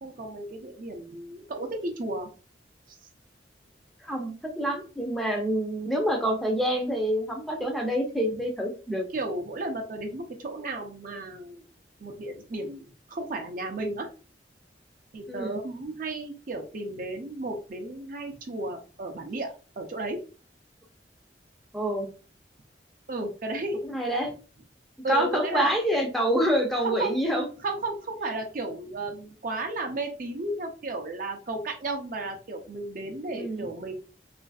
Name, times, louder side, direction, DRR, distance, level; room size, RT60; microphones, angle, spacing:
voice 1, 0.0-2.3 9.1-11.6 12.0-14.1 15.1-20.3 23.1-23.9 25.0-25.7 26.8-27.1 27.6-34.0, right 2 dB, 45° right, 4 dB, 0.5 m, -33 dB
voice 2, 4.0-9.1 15.3-15.6 21.7-22.1 23.8-24.3 25.1-27.5 33.3-33.7, equal, ahead, 0 dB, 0.5 m, -27 dB
2.9 x 2.5 x 2.3 m, 0.36 s
head